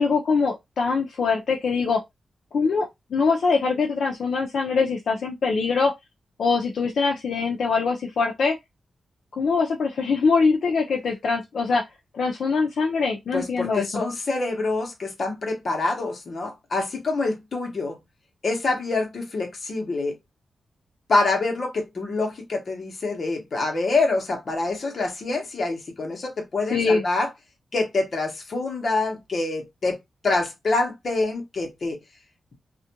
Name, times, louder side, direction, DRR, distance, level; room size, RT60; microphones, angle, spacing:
voice 1, 0.0-2.0 2.5-2.9 3.1-5.9 6.4-8.6 9.3-11.8 12.1-14.0 26.7-27.0, left 4 dB, 65° left, 0.5 m, -23 dB
voice 2, 13.3-18.0 18.4-20.2 21.1-27.3 27.7-30.0 30.2-32.0, left 3 dB, 40° left, 0.8 m, -26 dB
2.4 x 2.1 x 2.8 m
wide cardioid pair, 160°, 0 cm